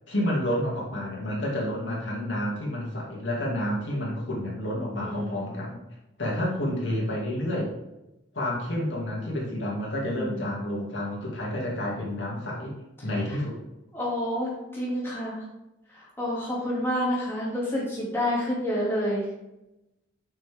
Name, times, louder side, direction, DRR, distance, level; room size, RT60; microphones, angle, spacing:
voice 1, 0.1-5.8 6.2-7.7 8.3-12.8 13.0-13.6, left 1 dB, 75° left, -3 dB, 2.3 m, -29 dB
voice 2, 5.0-5.6 6.4-6.6 10.1-10.5 13.3-13.4 13.9-15.4 15.9-19.3, equal, 10° left, -6 dB, 2.3 m, -29 dB
6.5 x 6.0 x 3.5 m, 0.95 s
head